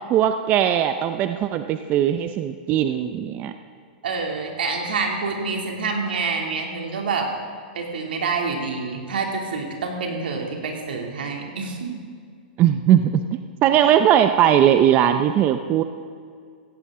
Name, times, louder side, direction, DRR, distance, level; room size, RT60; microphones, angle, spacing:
voice 1, 0.1-3.5 12.6-13.2 13.6-15.8, right 10 dB, 35° right, 8 dB, 0.6 m, -19 dB
voice 2, 4.0-7.3 7.7-11.9, right 4 dB, 85° right, 1 dB, 2.8 m, -27 dB
16.5 x 14.0 x 3.8 m, 2.1 s
hypercardioid pair, 130°, 5 cm